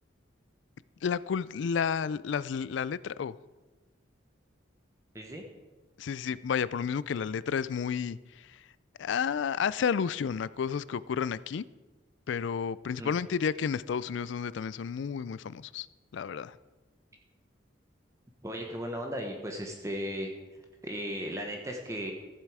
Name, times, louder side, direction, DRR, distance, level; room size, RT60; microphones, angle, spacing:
voice 1, 1.0-3.3 6.0-8.6 9.0-11.6 12.3-15.9 16.1-16.6, left 6 dB, 75° left, 18 dB, 0.3 m, -31 dB
voice 2, 18.4-20.3 20.8-22.1, equal, 15° right, 2 dB, 1.0 m, -36 dB
14.0 x 7.5 x 4.8 m, 1.2 s
head